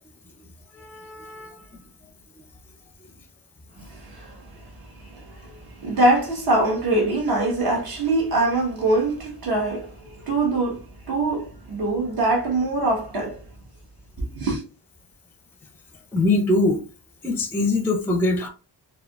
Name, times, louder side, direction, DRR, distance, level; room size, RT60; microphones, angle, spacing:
voice 1, 0.7-1.6 3.8-3.9 16.1-16.8 17.2-18.5, left 2 dB, 5° left, 0.5 m, -23 dB
voice 2, 3.9-13.4 14.2-14.6, right 2 dB, 55° right, 1.4 m, -24 dB
4.7 x 2.4 x 2.4 m
wide cardioid pair, 165°, 43 cm